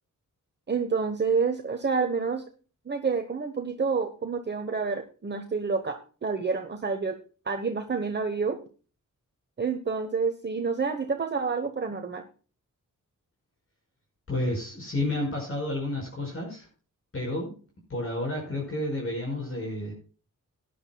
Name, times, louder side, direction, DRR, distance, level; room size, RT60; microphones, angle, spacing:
voice 1, 0.7-2.4 2.9-7.2 7.4-8.6 9.6-12.2, right 5 dB, 35° right, 6 dB, 1.1 m, -28 dB
voice 2, 14.3-16.7 17.1-17.5 17.9-19.9, left 1 dB, 45° left, -2 dB, 5.3 m, -30 dB
18.5 x 10.5 x 2.3 m, 0.37 s
wide cardioid pair, 140°, 32 cm